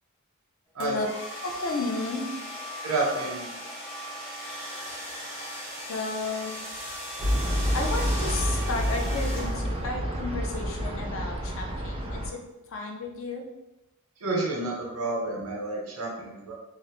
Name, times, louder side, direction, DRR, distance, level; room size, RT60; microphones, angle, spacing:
sound 1, 0.8-9.9, equal, 25° left, 0.7 m, -38 dB
voice 1, 1.4-2.3 5.9-6.5 7.7-13.5, left 3 dB, 60° left, 3 dB, 0.4 m, -33 dB
voice 2, 2.8-3.5 14.2-16.5, right 2 dB, 80° right, -2 dB, 0.7 m, -30 dB
sound 2, 7.2-12.3, equal, 25° right, 0.4 m, -28 dB
2.5 x 2.0 x 2.9 m, 0.96 s
head